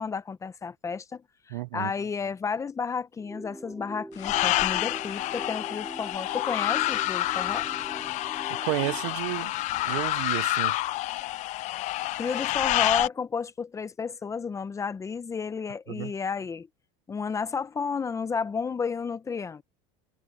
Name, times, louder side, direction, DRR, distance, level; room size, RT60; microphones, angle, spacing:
voice 1, 0.0-7.7 12.2-16.7 17.1-19.6, left 5 dB, 20° left, 0.8 m, -32 dB
voice 2, 1.5-1.9 8.6-9.5 9.9-10.7 15.9-16.1, right 20 dB, 85° right, 0.9 m, -31 dB
sound 1, 3.2-9.2, right 1 dB, 5° right, 5.8 m, -43 dB
sound 2, 4.2-13.1, left 17 dB, 50° left, 0.7 m, -28 dB
supercardioid pair, 120°, 15 cm